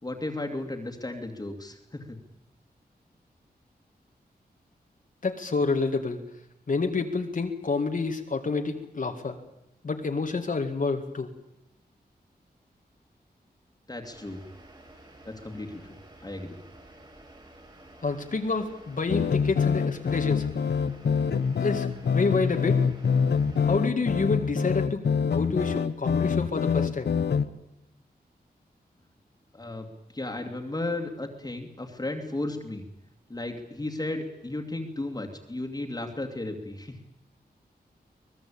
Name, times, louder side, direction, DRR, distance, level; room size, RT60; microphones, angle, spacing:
voice 1, 0.0-2.2 13.9-14.4 15.2-16.0 16.2-16.6 29.5-32.9 33.3-37.0, left 2 dB, 20° left, 3 dB, 2.5 m, -34 dB
voice 2, 5.2-6.2 6.7-9.4 9.8-11.3 18.0-20.5 21.6-22.8 23.7-27.1, left 4 dB, 55° left, 4 dB, 2.0 m, -28 dB
sound 1, 14.0-23.7, right 1 dB, 30° right, 5.6 m, -51 dB
sound 2, 19.1-27.5, left 6 dB, 90° left, 1.1 m, -25 dB
24.5 x 19.5 x 8.7 m, 0.85 s
wide cardioid pair, 110°, 17 cm